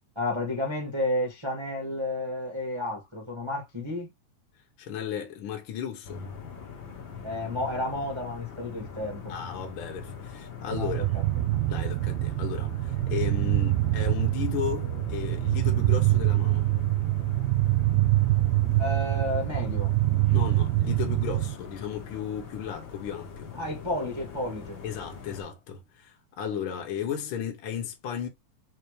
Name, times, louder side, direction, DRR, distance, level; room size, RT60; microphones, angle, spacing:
voice 1, 0.1-4.1 7.2-9.3 10.8-11.2 18.8-19.9 23.5-24.8, left 1 dB, 30° right, 0.4 m, -31 dB
voice 2, 4.8-6.2 9.3-11.2 11.7-16.7 20.3-23.5 24.8-28.3, left 9 dB, 80° left, 1.2 m, -35 dB
sound 1, 6.0-25.4, left 6 dB, 50° left, 1.5 m, -42 dB
sound 2, 10.7-21.5, right 17 dB, 85° right, 2.1 m, -25 dB
5.8 x 2.9 x 3.1 m
omnidirectional pair, 3.7 m